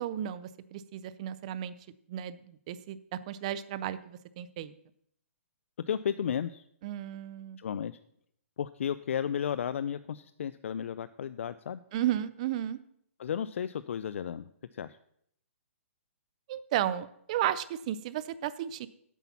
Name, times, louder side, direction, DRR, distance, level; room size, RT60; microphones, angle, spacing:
voice 1, 0.0-1.7 2.1-4.7 6.8-7.6 11.9-12.8 16.5-18.9, right 11 dB, 30° right, 16 dB, 0.4 m, -34 dB
voice 2, 5.9-6.6 7.6-8.0 8.6-11.8 13.2-14.5 14.7-15.0, left 8 dB, 65° left, 15 dB, 0.4 m, -33 dB
8.3 x 8.2 x 5.7 m, 0.69 s
hypercardioid pair, 165°, 7 cm